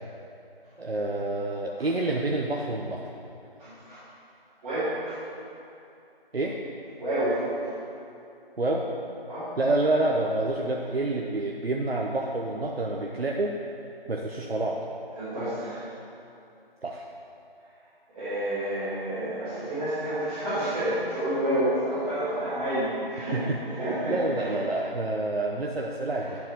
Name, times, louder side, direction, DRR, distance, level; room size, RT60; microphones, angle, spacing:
voice 1, 0.8-3.1 6.3-6.6 8.6-8.9 9.6-13.5 14.1-14.8 16.8-17.0 23.2-23.6 24.1-26.4, right 2 dB, 80° right, -1 dB, 1.0 m, -28 dB
voice 2, 3.6-4.0 4.6-5.2 7.0-7.7 9.3-9.5 15.2-15.8 18.1-24.5, right 1 dB, 10° right, -20 dB, 2.0 m, -29 dB
11.0 x 7.4 x 4.7 m, 2.7 s
figure-of-eight pair, 160°, 30 cm